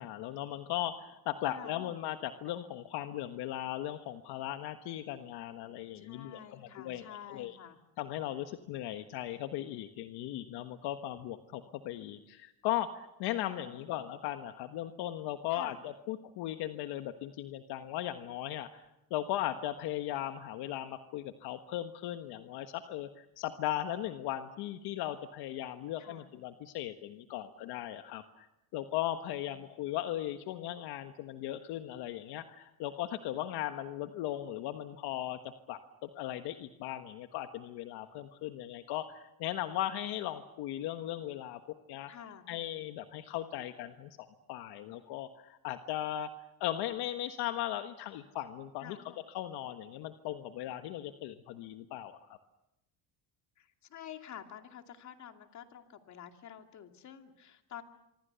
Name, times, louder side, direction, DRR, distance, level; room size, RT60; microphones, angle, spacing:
voice 1, 0.0-7.6 8.0-28.5 28.7-35.4 35.7-41.6 41.9-42.1 42.5-46.3 46.6-52.4, left 12 dB, 70° left, 8 dB, 1.5 m, -38 dB
voice 2, 1.5-1.8 5.9-7.8 13.6-13.9 15.5-15.8 26.0-26.3 30.1-30.2 42.1-42.5 48.8-49.0 53.6-57.8, left 9 dB, 45° left, 5 dB, 2.6 m, -49 dB
26.0 x 24.5 x 7.0 m, 0.88 s
cardioid pair, 130°, 40 cm